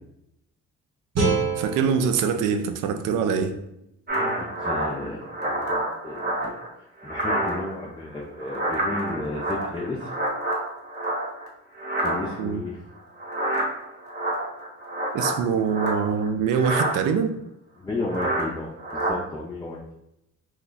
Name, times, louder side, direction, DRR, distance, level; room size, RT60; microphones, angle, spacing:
sound 1, 1.1-4.2, right 4 dB, 55° right, 1.2 m, -29 dB
voice 1, 1.6-3.6 12.4-12.6 15.1-17.3, right 6 dB, 90° right, 8 dB, 0.5 m, -24 dB
sound 2, 4.1-6.7 7.0-7.9 8.2-11.5 11.8-12.5 13.2-16.3 16.5-17.0 18.0-18.5 18.8-19.1, right 1 dB, 35° right, 1.1 m, -28 dB
voice 2, 4.6-6.6 7.0-10.1 12.0-12.8 17.8-19.8, left 2 dB, 15° left, -3 dB, 0.5 m, -33 dB
3.0 x 2.2 x 3.9 m, 0.83 s
cardioid pair, 90°, 30 cm